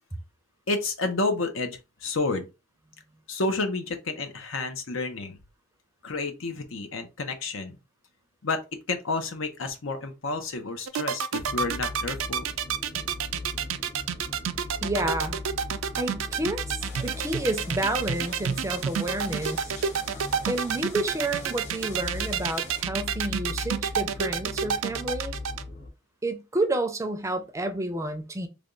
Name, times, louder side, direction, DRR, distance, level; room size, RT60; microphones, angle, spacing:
voice 1, 0.7-2.5 3.3-5.4 6.0-7.8 8.4-8.6 8.9-12.5, left 3 dB, 85° left, 0.8 m, -30 dB
sound 1, 10.9-25.6, right 7 dB, 80° right, 0.4 m, -28 dB
sound 2, 11.4-25.9, left 3 dB, 60° left, 1.2 m, -39 dB
voice 2, 14.8-15.4 16.0-19.7 20.5-25.3 26.2-28.5, right 1 dB, 15° right, 0.5 m, -30 dB
sound 3, 16.8-22.8, left 1 dB, 40° left, 1.0 m, -46 dB
3.4 x 2.3 x 3.8 m
head